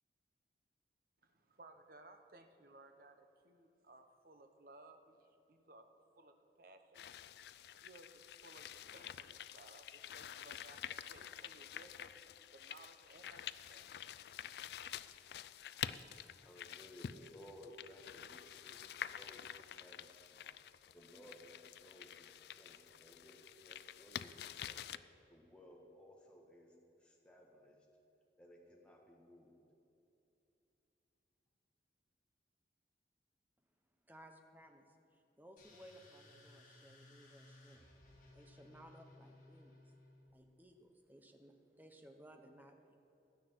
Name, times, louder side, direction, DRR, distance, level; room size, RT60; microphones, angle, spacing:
voice 1, 1.2-5.9 6.2-6.3 6.6-7.1 7.5-12.1 12.5-14.1, right 2 dB, 50° right, 6 dB, 0.9 m, -60 dB
sound 1, 6.9-25.0, left 9 dB, 65° left, 0.3 m, -48 dB
voice 2, 16.4-20.5 20.9-24.9 25.3-27.9 28.4-29.5, equal, 5° left, -1 dB, 1.4 m, -59 dB
voice 3, 34.1-37.8 38.3-39.9 40.3-43.0, equal, 10° right, 5 dB, 0.9 m, -60 dB
sound 2, 35.6-40.3, left 2 dB, 45° left, 2.5 m, -61 dB
16.0 x 11.0 x 4.6 m, 2.8 s
head